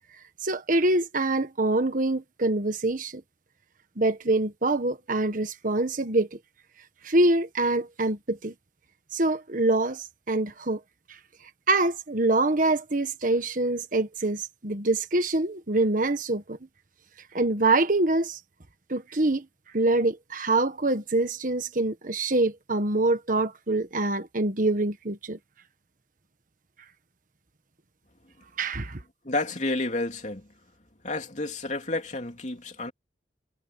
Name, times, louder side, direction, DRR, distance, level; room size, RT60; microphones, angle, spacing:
voice 1, 0.4-3.2 4.0-6.4 7.0-8.5 9.1-10.8 11.7-16.6 17.3-18.4 18.9-19.4 19.7-25.4 28.6-29.0, right 2 dB, 50° right, 1.5 m, -25 dB
voice 2, 29.2-30.5 31.0-32.9, left 2 dB, 45° left, 3.0 m, -30 dB
head